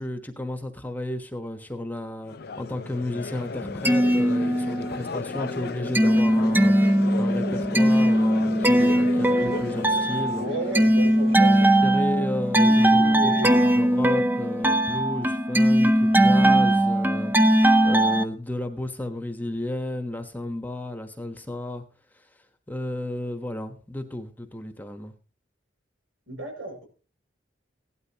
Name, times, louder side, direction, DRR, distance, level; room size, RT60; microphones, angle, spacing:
voice 1, 0.0-10.5 11.5-21.8 22.1-22.3 22.7-25.1, left 1 dB, 10° left, 7 dB, 1.1 m, -33 dB
Crowd, 2.3-12.4, left 4 dB, 50° left, 0.5 m, -35 dB
sound 1, 3.6-5.1 5.4-18.2, right 1 dB, 10° right, 0.6 m, -20 dB
voice 2, 10.4-11.7 12.6-13.6 26.3-26.9, right 2 dB, 80° right, 2 dB, 6.3 m, -34 dB
17.0 x 12.0 x 2.9 m, 0.36 s
head